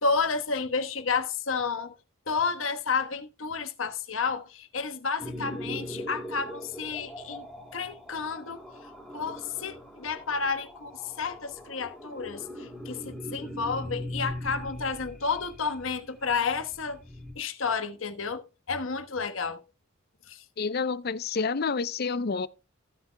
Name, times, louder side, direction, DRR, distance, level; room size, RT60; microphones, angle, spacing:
voice 1, 0.0-1.9 2.3-7.5 7.7-8.6 9.1-17.0 17.4-18.4 18.7-19.6 20.3-20.4, left 5 dB, 80° left, 1.2 m, -31 dB
sound 1, 5.2-17.3, equal, 5° left, 2.3 m, -41 dB
voice 2, 20.6-22.5, left 5 dB, 50° left, 0.6 m, -29 dB
15.0 x 9.6 x 2.2 m
head